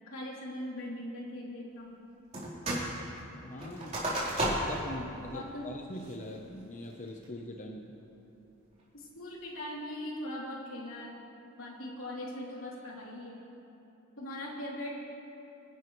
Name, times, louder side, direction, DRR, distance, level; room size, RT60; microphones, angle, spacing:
voice 1, 0.1-2.0 5.3-5.8 8.9-11.2 11.6-13.4 14.2-15.1, left 1 dB, 85° left, -4 dB, 3.2 m, -40 dB
sound 1, 2.3-2.9 3.2-4.9 5.3-5.4 5.9-6.3 6.8-7.2, right 1 dB, 35° right, 3.9 m, -33 dB
voice 2, 2.7-3.1 3.4-4.0 4.7-7.9, left 1 dB, 40° left, 1 dB, 0.9 m, -42 dB
26.5 x 11.0 x 3.2 m, 2.8 s
head